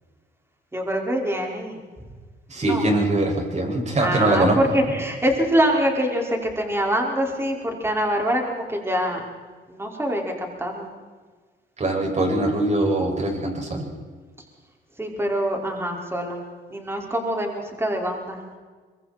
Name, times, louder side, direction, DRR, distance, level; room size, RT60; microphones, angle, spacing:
voice 1, 0.7-1.8 2.6-2.8 4.0-9.2 9.7-10.9 15.0-16.4 16.7-18.4, equal, 10° right, 0 dB, 5.5 m, -24 dB
voice 2, 2.5-4.6 11.8-13.9, right 1 dB, 35° right, 1 dB, 6.8 m, -22 dB
25.5 x 23.0 x 4.6 m, 1.4 s
cardioid pair, 90°, 20 cm